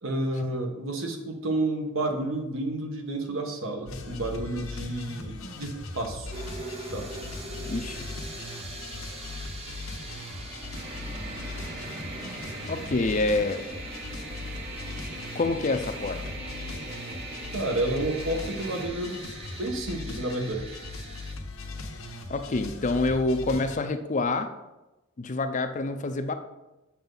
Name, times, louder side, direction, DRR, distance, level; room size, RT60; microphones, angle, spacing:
voice 1, 0.0-6.3 6.9-7.1 17.5-19.2 19.6-20.8, right 1 dB, 70° right, 3 dB, 1.3 m, -30 dB
sound 1, 3.9-23.8, left 2 dB, 85° left, 1.1 m, -39 dB
sound 2, 6.3-21.3, right 2 dB, 30° right, 1.0 m, -43 dB
voice 2, 7.6-8.1 12.7-13.6 15.3-16.2 22.3-24.5 25.2-26.3, left 2 dB, 35° left, 8 dB, 0.5 m, -27 dB
sound 3, 10.7-18.9, right 2 dB, 45° right, 1.7 m, -41 dB
7.2 x 6.6 x 3.9 m, 1.0 s
head